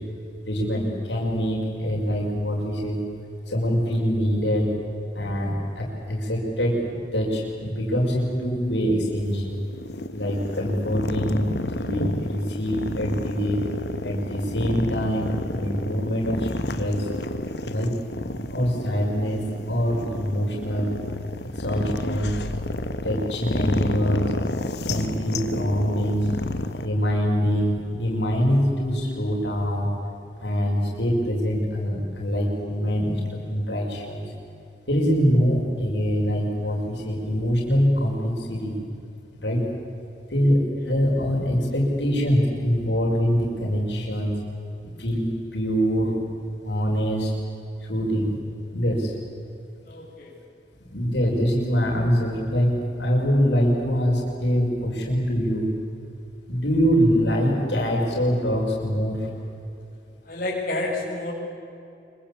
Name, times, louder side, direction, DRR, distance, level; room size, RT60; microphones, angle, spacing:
voice 1, 0.5-3.0 3.5-4.7 5.1-9.6 10.1-13.7 14.0-17.1 17.6-17.9 18.5-21.0 21.4-22.4 23.0-24.4 24.8-26.5 26.8-29.9 30.4-33.2 33.5-34.2 34.9-38.7 39.4-39.6 40.3-44.3 45.0-46.2 46.6-47.3 47.9-48.3 48.7-49.1 50.9-52.7 53.0-55.7 56.5-59.3, equal, 85° left, -2 dB, 6.3 m, -24 dB
sound 1, 9.2-26.9, left 1 dB, 70° left, 1.7 m, -31 dB
voice 2, 49.8-50.4 60.2-61.3, left 2 dB, 50° left, -3 dB, 7.2 m, -30 dB
26.5 x 24.0 x 8.8 m, 2.7 s
head